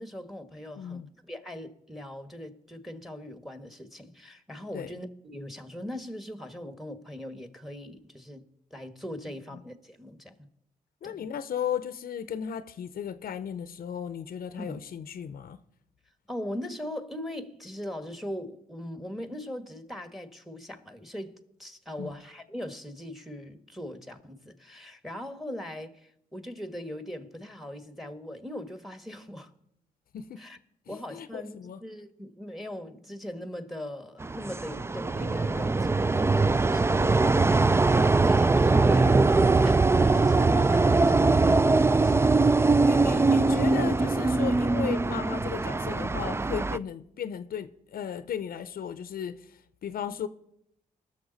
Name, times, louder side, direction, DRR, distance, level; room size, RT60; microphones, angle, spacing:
voice 1, 0.0-10.5 11.0-11.3 14.6-14.8 16.3-21.3 21.6-29.5 30.4-30.6 30.9-36.0 36.3-41.6 41.9-42.3 43.1-43.4 43.7-44.1, left 1 dB, ahead, 1.5 m, -40 dB
voice 2, 0.8-1.1 4.7-4.9 9.5-9.6 11.0-15.6 22.0-22.1 30.1-30.4 30.9-31.8 42.8-50.3, left 8 dB, 70° left, 0.6 m, -36 dB
sound 1, 34.2-46.8, right 3 dB, 15° right, 0.4 m, -22 dB
20.0 x 6.7 x 4.0 m
supercardioid pair, 50°, 15 cm